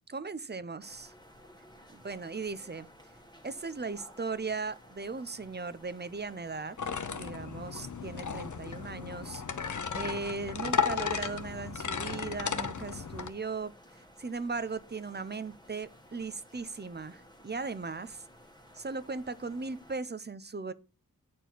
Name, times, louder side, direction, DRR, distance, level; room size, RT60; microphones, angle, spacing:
voice 1, 0.1-1.1 1.9-2.9 3.4-6.8 7.1-9.4 9.9-13.7 14.2-18.2 18.7-20.7, right 4 dB, 30° right, 0.6 m, -38 dB
sound 1, 0.8-20.0, equal, 10° left, 1.3 m, -56 dB
sound 2, 6.8-13.3, left 6 dB, 60° left, 0.7 m, -34 dB
8.2 x 4.4 x 4.5 m
wide cardioid pair, 40°, 35 cm